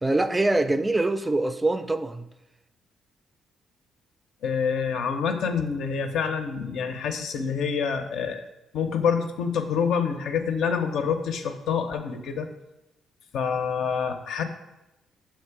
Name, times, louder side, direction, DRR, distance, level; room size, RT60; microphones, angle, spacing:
voice 1, 0.0-2.3, right 2 dB, 15° right, 0.3 m, -24 dB
voice 2, 4.4-8.4 8.7-12.5 13.3-14.4, left 6 dB, 75° left, 0.6 m, -27 dB
6.6 x 3.1 x 4.5 m
cardioid pair, 90°, 0 cm